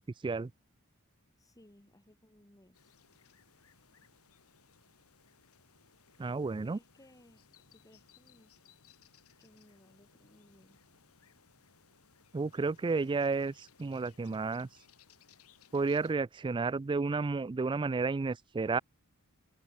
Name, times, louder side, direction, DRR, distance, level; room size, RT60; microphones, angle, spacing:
voice 1, 1.4-2.9 6.2-7.4 7.7-8.5 9.4-10.8, left 1 dB, 15° left, 2.2 m, -61 dB
sound 1, 2.7-16.1, left 6 dB, 80° left, 2.5 m, -64 dB
voice 2, 6.2-6.8 12.3-14.7 15.7-18.8, right 4 dB, 20° right, 0.3 m, -32 dB
head